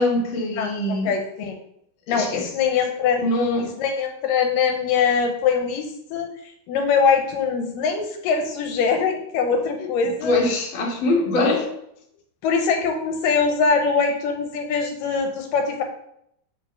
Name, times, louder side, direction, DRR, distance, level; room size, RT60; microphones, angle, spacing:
voice 1, 0.0-1.1 2.1-2.5 3.2-3.7 10.2-11.7, left 2 dB, 50° left, -1 dB, 1.7 m, -22 dB
voice 2, 0.6-1.6 2.1-3.2 3.6-10.4 12.4-15.8, left 5 dB, 75° left, 5 dB, 2.3 m, -23 dB
5.6 x 5.3 x 6.2 m, 0.75 s
omnidirectional pair, 4.0 m